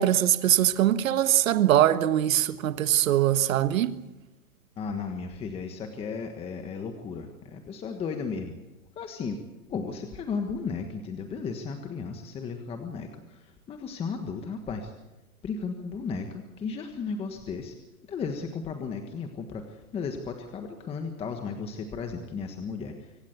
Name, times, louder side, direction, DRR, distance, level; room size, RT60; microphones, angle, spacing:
voice 1, 0.0-4.0, right 12 dB, 65° right, 1.4 m, -22 dB
voice 2, 4.8-8.6 8.9-9.4 9.7-14.9 15.4-17.7 18.1-23.2, left 5 dB, 15° left, 1.4 m, -35 dB
24.5 x 17.0 x 8.2 m
hypercardioid pair, 155°, 44 cm